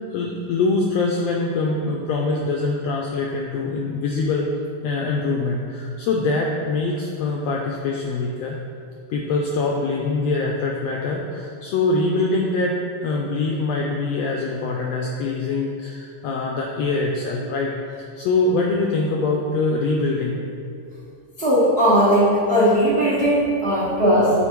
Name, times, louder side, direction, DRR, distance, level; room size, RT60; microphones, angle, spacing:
voice 1, 0.1-4.5 4.8-8.6 9.1-12.8 13.0-20.4, left 3 dB, 85° left, -1 dB, 1.5 m, -23 dB
voice 2, 21.4-24.3, equal, 60° right, -8 dB, 0.6 m, -18 dB
8.1 x 4.1 x 4.5 m, 2.4 s
omnidirectional pair, 3.5 m